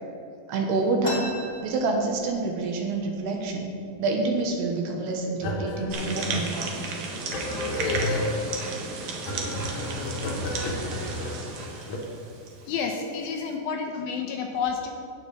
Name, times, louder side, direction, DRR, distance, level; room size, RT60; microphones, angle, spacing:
voice 1, 0.5-1.3 1.6-3.7 4.0-6.8, right 3 dB, 80° right, 2 dB, 3.2 m, -27 dB
sound 1, 1.0-2.6 3.0-3.1 3.3-3.9 4.5-4.7 5.4-5.6 6.0-6.5, left 2 dB, 35° left, 0.9 m, -36 dB
sound 2, 5.4-12.0, left 2 dB, 60° left, 2.2 m, -31 dB
sound 3, 5.9-12.7, right 4 dB, 65° right, 2.1 m, -34 dB
voice 2, 12.7-14.9, left 6 dB, 75° left, 2 dB, 2.3 m, -30 dB
18.0 x 6.8 x 3.4 m, 2.5 s
omnidirectional pair, 4.7 m